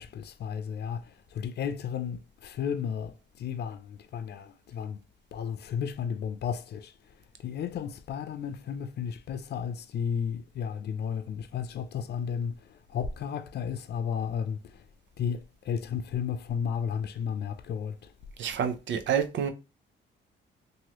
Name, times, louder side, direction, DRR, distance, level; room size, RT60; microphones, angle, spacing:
voice 1, 0.0-5.0 5.3-6.9 7.4-14.8 15.2-18.0, left 7 dB, 55° left, 0.5 m, -33 dB
voice 2, 18.4-19.5, right 8 dB, 70° right, 0.6 m, -28 dB
3.0 x 2.7 x 2.9 m
cardioid pair, 90°, 20 cm